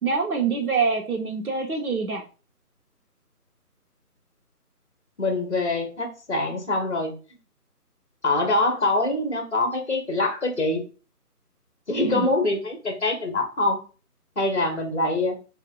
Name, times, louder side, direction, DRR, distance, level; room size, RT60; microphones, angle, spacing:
voice 1, 0.0-2.2 12.0-12.3, right 5 dB, 65° right, 2 dB, 1.2 m, -25 dB
voice 2, 5.2-7.1 8.2-10.8 11.9-13.8 14.4-15.4, left 2 dB, 45° left, 4 dB, 1.1 m, -24 dB
3.8 x 2.8 x 3.8 m, 0.35 s
figure-of-eight pair, 175°, 47 cm